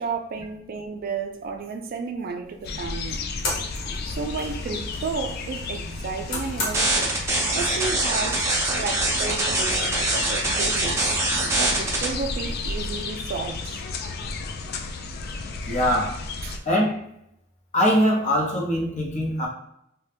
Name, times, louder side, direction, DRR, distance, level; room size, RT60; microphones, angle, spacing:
voice 1, 0.0-3.2 4.1-7.2 7.5-8.5 8.8-11.1 11.5-13.8 16.4-16.6, right 4 dB, 50° right, 0.3 m, -32 dB
sound 1, 2.4-13.1, left 2 dB, 85° left, 1.0 m, -39 dB
sound 2, 2.6-16.6, left 3 dB, 55° left, 0.3 m, -33 dB
sound 3, 6.7-12.0, right 2 dB, 15° right, 0.7 m, -24 dB
voice 2, 15.7-16.2 16.6-17.0 17.7-19.5, equal, 40° left, 0.7 m, -22 dB
2.7 x 2.2 x 3.3 m
head